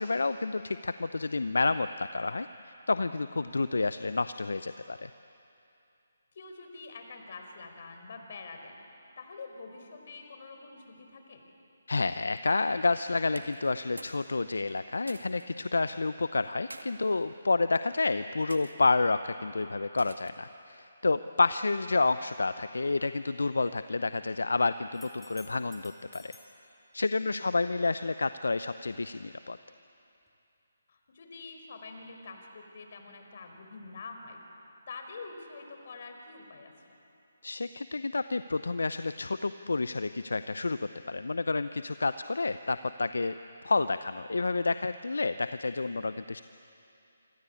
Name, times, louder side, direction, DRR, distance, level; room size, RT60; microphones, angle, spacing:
voice 1, 0.0-5.1 11.9-26.4 26.9-29.6 37.4-40.8 41.1-43.4 43.6-46.4, left 3 dB, 75° left, 12 dB, 0.7 m, -29 dB
voice 2, 6.3-8.8 9.2-11.4 27.2-27.5 30.9-34.4 34.9-36.7, left 3 dB, 50° left, 5 dB, 4.8 m, -46 dB
sound 1, 13.3-14.2 14.5-15.5 16.4-16.9 17.6-17.9 18.5-18.8 20.0-20.5, right 2 dB, 90° right, 2.1 m, -47 dB
sound 2, 24.9-26.6 30.3-30.4, left 3 dB, 5° left, 2.9 m, -56 dB
27.0 x 26.0 x 8.6 m, 2.8 s
figure-of-eight pair, 145°, 0 cm